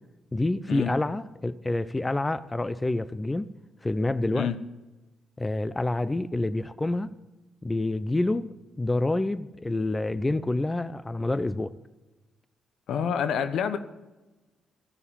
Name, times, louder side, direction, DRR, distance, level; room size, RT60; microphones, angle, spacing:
voice 1, 0.3-3.5 3.8-4.5 5.4-7.1 7.6-11.7, left 2 dB, 20° left, 15 dB, 0.7 m, -28 dB
voice 2, 12.9-13.8, left 7 dB, 70° left, 11 dB, 1.0 m, -27 dB
14.5 x 6.8 x 8.9 m, 1.1 s
hypercardioid pair, 50°, 0 cm